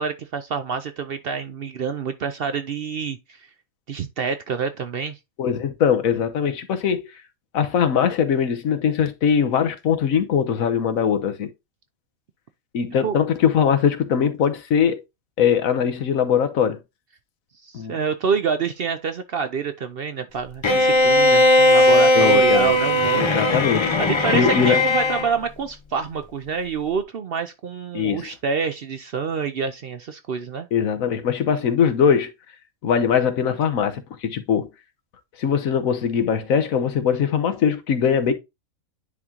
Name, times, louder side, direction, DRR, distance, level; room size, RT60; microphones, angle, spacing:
voice 1, 0.0-3.5 3.9-5.2 13.0-13.2 17.6-23.5 24.0-30.7, right 5 dB, 60° right, 0.7 m, -27 dB
voice 2, 5.4-7.0 7.5-11.5 12.7-15.0 15.4-16.8 17.7-17.9 22.1-22.7 23.2-23.9 24.3-24.8 27.9-28.3 30.7-32.3 32.8-34.7 35.4-38.3, left 7 dB, 80° left, 1.3 m, -21 dB
Bowed string instrument, 20.6-25.3, left 1 dB, 40° left, 0.4 m, -17 dB
9.9 x 3.7 x 2.8 m
omnidirectional pair, 1.4 m